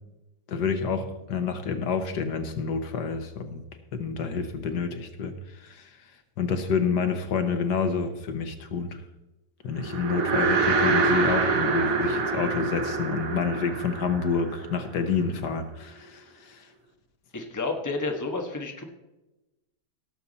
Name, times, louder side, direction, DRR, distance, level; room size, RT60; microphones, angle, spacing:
voice 1, 0.5-3.6 3.9-5.9 6.4-8.9 9.6-16.7, left 5 dB, 75° left, 8 dB, 1.6 m, -28 dB
sound 1, 9.8-15.2, right 4 dB, 55° right, 1.5 m, -26 dB
voice 2, 17.3-18.8, left 3 dB, 10° left, 3 dB, 1.1 m, -30 dB
17.0 x 7.1 x 4.0 m, 1.0 s
omnidirectional pair, 1.8 m